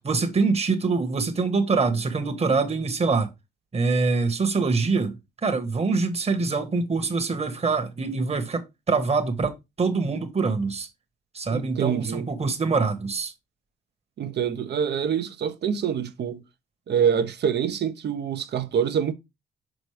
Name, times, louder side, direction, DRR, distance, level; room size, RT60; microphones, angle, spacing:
voice 1, 0.0-3.3 3.7-10.9 11.3-13.3, right 4 dB, 30° right, 1.4 m, -24 dB
voice 2, 11.5-12.2 14.2-16.4 16.9-19.1, right 8 dB, 60° right, 0.9 m, -25 dB
6.3 x 5.1 x 3.3 m
cardioid pair, 90°, 20 cm